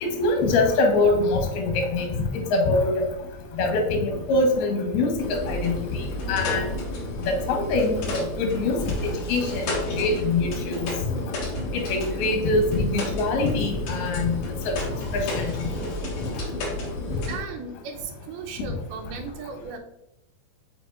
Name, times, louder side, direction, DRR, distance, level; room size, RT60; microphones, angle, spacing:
voice 1, 0.0-2.1 2.3-3.1 3.6-5.1 5.5-6.0 6.3-6.7 7.3-8.9 9.3-9.7 10.0-10.9 11.7-14.3 14.6-14.8 15.1-15.5, left 2 dB, 80° left, 2 dB, 3.1 m, -23 dB
sound 1, 5.2-17.4, left 1 dB, 55° left, 2.6 m, -31 dB
voice 2, 17.3-19.8, right 5 dB, 80° right, 3 dB, 2.7 m, -36 dB
7.6 x 5.7 x 2.5 m, 0.87 s
omnidirectional pair, 4.5 m